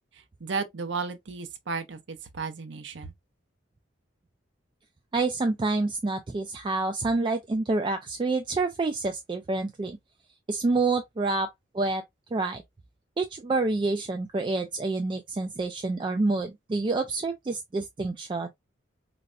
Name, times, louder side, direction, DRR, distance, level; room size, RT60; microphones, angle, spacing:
voice 1, 0.1-3.1, right 4 dB, 70° right, 0.6 m, -34 dB
voice 2, 5.1-10.0 10.5-11.5 11.7-12.0 12.3-12.6 13.2-18.5, right 3 dB, 25° right, 0.3 m, -27 dB
4.0 x 2.1 x 2.3 m
head